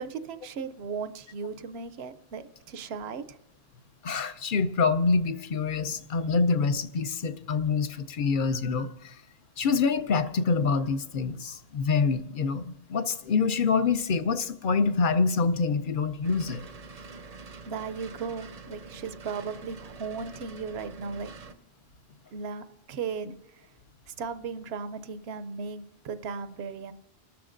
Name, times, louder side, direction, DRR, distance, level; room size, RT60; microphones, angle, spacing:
voice 1, 0.0-3.4 17.1-21.3 22.3-23.7 24.1-26.9, right 5 dB, 70° right, 12 dB, 0.9 m, -37 dB
voice 2, 4.0-9.2 9.6-16.6, left 4 dB, 55° left, 11 dB, 0.8 m, -26 dB
sound 1, 16.2-21.5, right 4 dB, 45° right, 0.6 m, -45 dB
30.0 x 13.0 x 2.5 m, 0.95 s
omnidirectional pair, 1.1 m